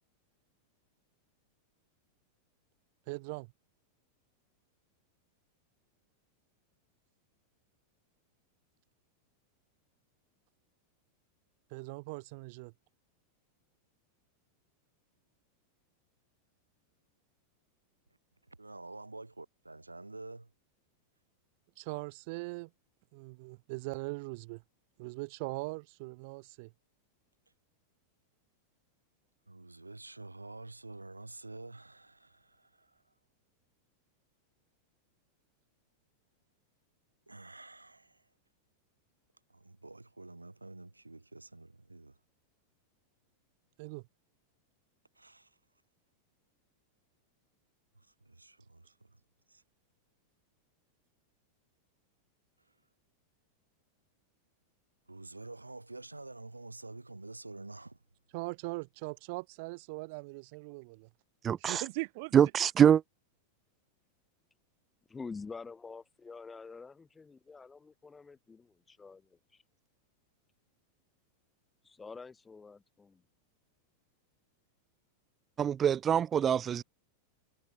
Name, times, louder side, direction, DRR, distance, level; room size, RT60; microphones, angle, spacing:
voice 1, 3.1-3.5 11.7-12.7 21.8-22.7 23.1-24.6 25.0-26.7 43.8-44.0 58.3-61.1 61.6-62.3, right 27 dB, 50° right, 1.8 m, -40 dB
voice 2, 18.5-20.5 29.5-33.1 37.3-38.3 39.5-42.2 45.2-45.6 47.9-49.2 49.5-49.6 55.1-58.0, right 2 dB, 85° right, 5.9 m, -48 dB
voice 3, 61.4-61.8 62.3-63.0 75.6-76.8, right 8 dB, 25° right, 0.4 m, -24 dB
voice 4, 65.1-68.6 68.9-69.6 71.8-73.2, left 4 dB, 15° left, 5.2 m, -47 dB
figure-of-eight pair, 90°, 0 cm